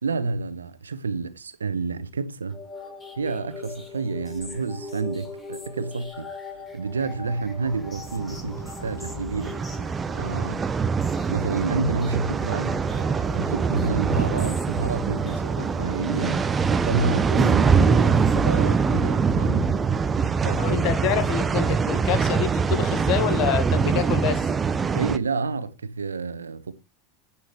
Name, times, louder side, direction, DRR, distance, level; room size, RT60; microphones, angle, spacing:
voice 1, 0.0-2.6 3.2-6.3 6.7-9.8 10.1-10.7 11.3-16.4 16.8-19.7 20.4-20.9 24.9-26.7, right 4 dB, 80° right, 1.2 m, -29 dB
sound 1, 2.5-18.9, left 3 dB, 20° left, 6.2 m, -42 dB
sound 2, 7.6-25.2, right 5 dB, 20° right, 0.9 m, -23 dB
voice 2, 20.4-24.5, left 10 dB, 50° left, 2.0 m, -27 dB
11.5 x 8.6 x 4.7 m
figure-of-eight pair, 80°, 0 cm